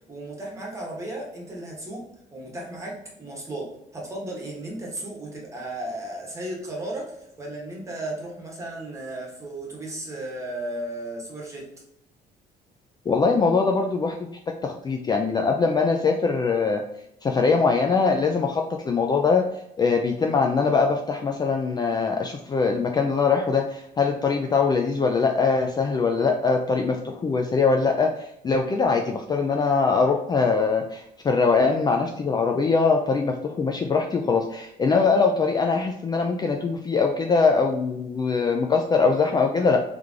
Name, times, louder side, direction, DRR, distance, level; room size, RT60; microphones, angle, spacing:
voice 1, 0.1-2.0 2.3-11.7, right 1 dB, 20° right, -3 dB, 1.5 m, -35 dB
voice 2, 13.1-14.3 14.6-16.8 17.2-19.4 19.8-39.8, left 4 dB, 25° left, 3 dB, 0.4 m, -22 dB
3.4 x 3.3 x 3.7 m, 0.81 s
cardioid pair, 110°, 17 cm